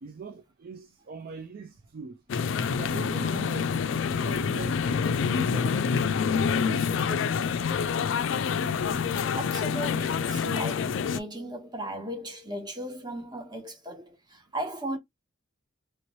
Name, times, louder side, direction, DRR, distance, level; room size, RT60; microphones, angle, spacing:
voice 1, 0.0-2.2 2.7-3.8 4.1-5.1 5.3-6.1 6.6-7.5, right 4 dB, 50° right, 0.4 m, -41 dB
sound 1, 2.3-11.2, left 6 dB, 65° left, 0.4 m, -27 dB
voice 2, 9.3-15.0, right 1 dB, 20° right, 1.2 m, -36 dB
3.0 x 3.0 x 3.0 m
head